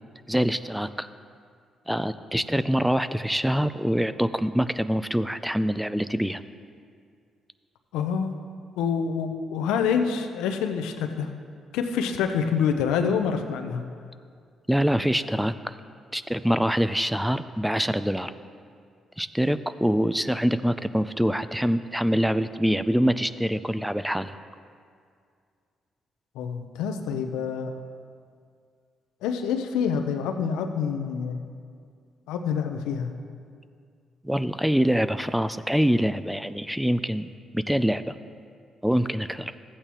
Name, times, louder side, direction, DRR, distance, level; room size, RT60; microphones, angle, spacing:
voice 1, 0.3-1.1 1.9-6.4 14.7-15.8 16.1-18.3 19.2-24.4 34.2-38.1 38.8-39.5, equal, 5° right, 13 dB, 0.4 m, -25 dB
voice 2, 7.9-8.4 8.8-11.3 11.7-13.8 26.4-27.7 29.2-31.4 32.3-33.1, left 6 dB, 80° left, 6 dB, 0.6 m, -27 dB
14.0 x 8.6 x 3.0 m, 2.2 s
hypercardioid pair, 50°, 0 cm